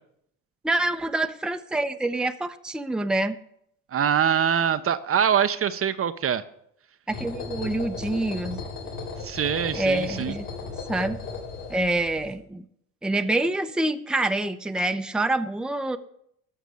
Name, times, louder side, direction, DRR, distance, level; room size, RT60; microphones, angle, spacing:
voice 1, 0.6-3.4 7.1-8.6 9.7-10.5 10.9-11.2 11.7-12.6 13.0-16.0, right 2 dB, ahead, 9 dB, 0.7 m, -26 dB
voice 2, 3.9-6.4 9.2-10.3, right 8 dB, 40° right, 12 dB, 0.7 m, -24 dB
sound 1, 7.1-12.3, left 4 dB, 80° left, 4.8 m, -36 dB
12.5 x 6.4 x 7.0 m, 0.73 s
supercardioid pair, 90°, 35 cm